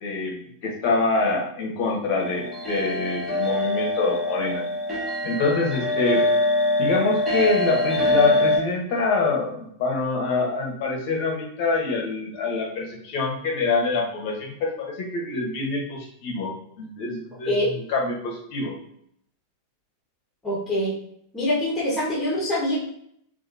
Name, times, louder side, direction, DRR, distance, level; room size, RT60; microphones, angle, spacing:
voice 1, 0.0-4.6 5.2-6.2 6.8-16.5 16.8-17.5 17.9-18.8, left 3 dB, 45° left, 0 dB, 1.0 m, -25 dB
sound 1, 2.2-8.6, left 1 dB, 5° right, 1.3 m, -24 dB
voice 2, 17.4-17.8 20.4-20.9 21.3-22.8, left 1 dB, 10° left, -6 dB, 1.4 m, -24 dB
4.1 x 2.5 x 2.7 m, 0.70 s
figure-of-eight pair, 90°, 0 cm